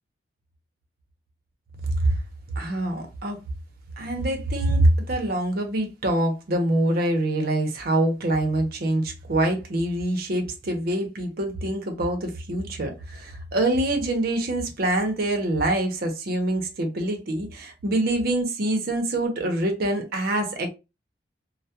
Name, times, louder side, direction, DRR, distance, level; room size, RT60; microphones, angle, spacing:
voice 1, 2.6-3.4 4.0-20.7, right 1 dB, 55° right, 0.6 m, -25 dB
2.2 x 2.0 x 2.7 m
head